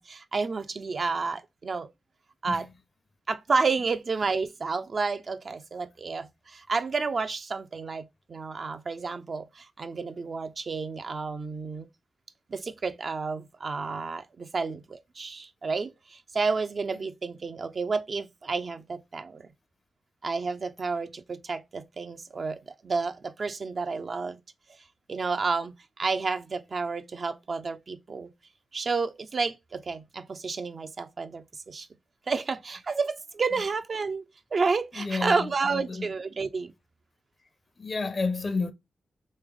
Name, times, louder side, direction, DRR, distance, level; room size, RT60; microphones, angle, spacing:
voice 1, 0.0-1.9 2.4-2.7 3.3-11.9 12.5-19.4 20.2-24.4 25.1-28.3 28.7-31.9 32.3-34.2 34.5-36.7, right 4 dB, 55° right, 0.5 m, -30 dB
voice 2, 34.9-36.1 37.8-38.7, left 4 dB, 50° left, 0.6 m, -31 dB
3.2 x 3.1 x 3.6 m
supercardioid pair, 45°, 0 cm